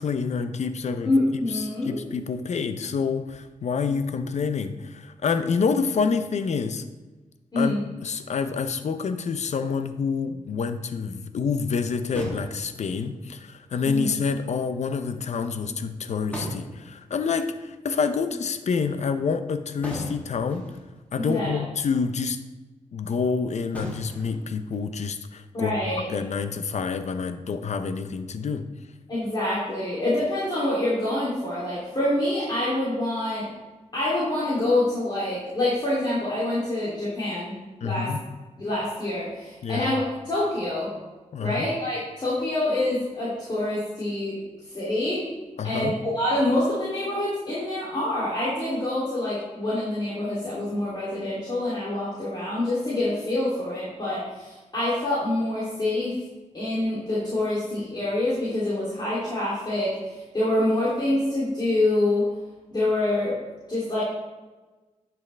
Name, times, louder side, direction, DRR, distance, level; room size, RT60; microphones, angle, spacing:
voice 1, 0.0-1.1 1.5-6.8 7.6-7.8 8.0-20.6 21.1-22.4 22.9-25.8 26.1-28.7 37.8-38.2 39.6-39.9 41.3-41.7 45.6-45.9, left 5 dB, 65° left, 10 dB, 0.7 m, -27 dB
voice 2, 1.0-2.0 7.5-7.8 13.8-14.1 21.2-21.6 25.5-26.0 29.1-33.5 33.9-37.5 37.8-38.1 38.6-40.9 41.4-44.4 44.7-45.2 45.6-56.2 56.5-62.3 62.7-63.3 63.7-64.0, left 1 dB, 35° left, -9 dB, 3.0 m, -26 dB
sound 1, 8.3-9.0 10.9-11.1 12.1-13.3 16.0-16.1 16.3-17.5 19.8-21.0 21.6-21.7 22.0-22.1 23.7-25.0, equal, 10° left, 2.5 m, -38 dB
10.5 x 6.1 x 3.4 m, 1.2 s
cardioid pair, 85°, 13 cm